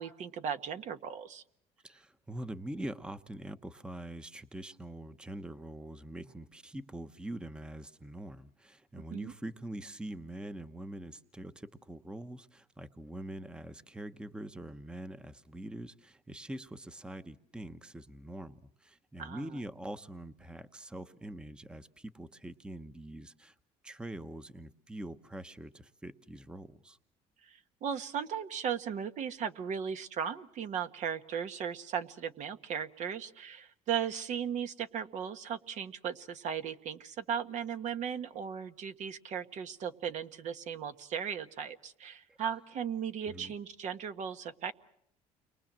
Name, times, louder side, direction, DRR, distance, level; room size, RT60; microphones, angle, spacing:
voice 1, 0.0-1.4 9.1-9.3 19.2-19.5 27.4-44.7, right 8 dB, 55° right, 9 dB, 1.5 m, -37 dB
voice 2, 1.8-23.5 23.8-27.0 43.3-43.5, right 1 dB, 5° right, 11 dB, 1.0 m, -44 dB
30.0 x 23.0 x 7.5 m, 0.70 s
cardioid pair, 120°, 14 cm